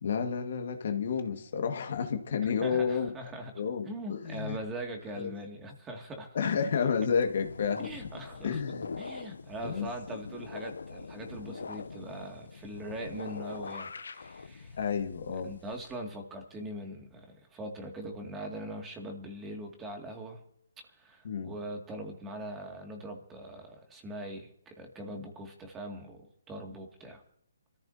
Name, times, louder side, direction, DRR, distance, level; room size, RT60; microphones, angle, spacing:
voice 1, 0.0-3.1 3.6-4.6 5.2-5.3 6.3-7.9 8.4-9.0 9.6-9.9 14.8-15.5 21.2-21.5, left 6 dB, 55° left, 1.9 m, -31 dB
voice 2, 2.4-3.5 3.9-6.4 7.8-8.6 9.0-14.8 15.4-20.4 21.0-27.2, right 1 dB, 15° right, 2.4 m, -41 dB
sound 1, 7.1-15.9, left 4 dB, 75° left, 0.7 m, -43 dB
27.5 x 14.5 x 2.9 m
hypercardioid pair, 150°, 0 cm